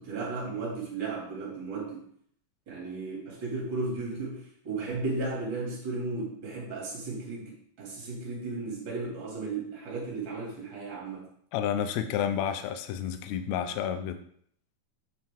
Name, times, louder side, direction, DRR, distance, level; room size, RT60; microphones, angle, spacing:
voice 1, 0.0-2.0 2.7-11.2, right 3 dB, 40° right, -3 dB, 2.7 m, -35 dB
voice 2, 11.5-14.2, left 9 dB, 80° left, 9 dB, 1.6 m, -30 dB
7.5 x 5.6 x 3.5 m, 0.64 s
omnidirectional pair, 3.8 m